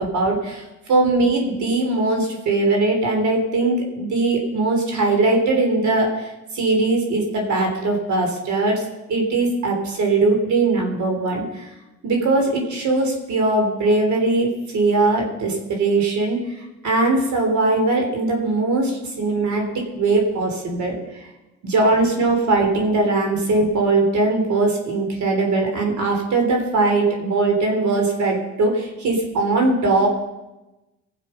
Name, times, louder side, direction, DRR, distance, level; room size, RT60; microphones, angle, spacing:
voice 1, 0.0-8.8 9.1-11.7 12.0-16.4 16.8-21.2 21.6-30.1, right 2 dB, 70° right, 2 dB, 3.6 m, -20 dB
19.5 x 7.5 x 5.5 m, 1.0 s
cardioid pair, 90°, 30 cm